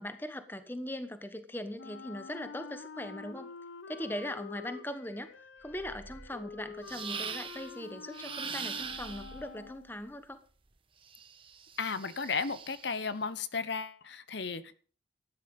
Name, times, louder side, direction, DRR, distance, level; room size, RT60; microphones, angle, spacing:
voice 1, 0.0-3.5 3.9-5.3 5.6-10.4, left 1 dB, 10° left, 10 dB, 1.2 m, -40 dB
Wind instrument woodwind instrument, 1.8-10.1, left 5 dB, 90° left, 1.3 m, -47 dB
sound 1, 5.6-7.7 8.7-10.8, right 1 dB, 50° right, 1.0 m, -55 dB
sound 2, 6.9-7.7 8.1-9.4 11.1-13.0, right 6 dB, 30° right, 1.3 m, -41 dB
voice 2, 11.8-14.8, left 5 dB, 65° left, 14 dB, 1.0 m, -34 dB
14.5 x 11.5 x 5.4 m, 0.41 s
head